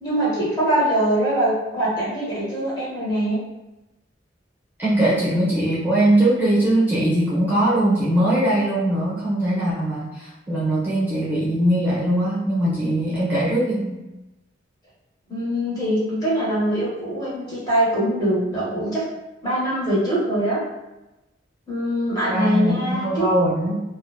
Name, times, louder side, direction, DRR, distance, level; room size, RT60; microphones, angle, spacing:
voice 1, 0.0-3.4 15.3-19.0 19.4-20.6 21.7-23.3, right 1 dB, 20° left, -8 dB, 0.8 m, -23 dB
voice 2, 4.8-14.0 22.3-23.8, right 1 dB, 10° right, -9 dB, 0.7 m, -21 dB
2.7 x 2.1 x 2.3 m, 0.99 s
head